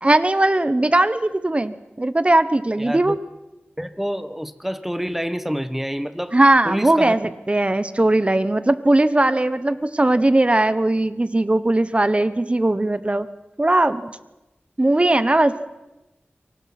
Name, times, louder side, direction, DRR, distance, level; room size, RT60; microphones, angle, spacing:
voice 1, 0.0-3.2 6.3-13.3 13.6-14.1 14.8-15.6, right 2 dB, 30° right, 13 dB, 1.2 m, -19 dB
voice 2, 2.8-3.2 3.8-6.4 6.6-7.2, equal, 5° right, 12 dB, 1.3 m, -27 dB
29.5 x 24.0 x 6.1 m, 1.0 s
wide cardioid pair, 70°, 4 cm